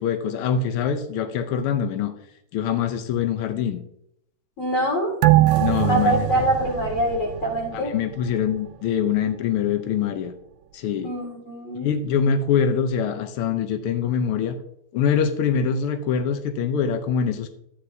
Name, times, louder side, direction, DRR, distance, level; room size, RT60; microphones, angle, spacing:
voice 1, 0.0-2.1 2.5-3.8 5.6-6.4 7.7-10.3 10.7-11.1 11.8-14.6 14.9-17.5, left 7 dB, 75° left, 7 dB, 1.3 m, -24 dB
voice 2, 4.6-5.1 5.9-7.9 11.0-11.9, right 1 dB, 45° left, -3 dB, 4.8 m, -24 dB
sound 1, 5.2-8.1 8.5-8.6, right 15 dB, 85° right, 2.0 m, -22 dB
13.0 x 9.6 x 2.7 m, 0.76 s
omnidirectional pair, 3.3 m